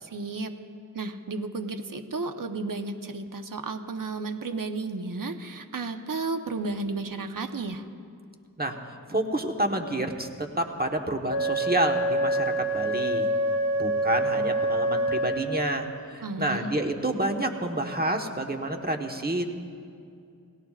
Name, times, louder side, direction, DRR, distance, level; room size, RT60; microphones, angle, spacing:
voice 1, 0.0-0.5 0.9-7.8 16.2-16.7, right 3 dB, 65° right, 6 dB, 1.0 m, -33 dB
voice 2, 9.1-13.3 13.8-19.5, right 1 dB, 25° right, 3 dB, 1.3 m, -29 dB
Wind instrument woodwind instrument, 11.3-15.9, right 1 dB, 70° left, 1.4 m, -26 dB
29.5 x 18.5 x 2.5 m, 2.4 s
wide cardioid pair, 65°, 35 cm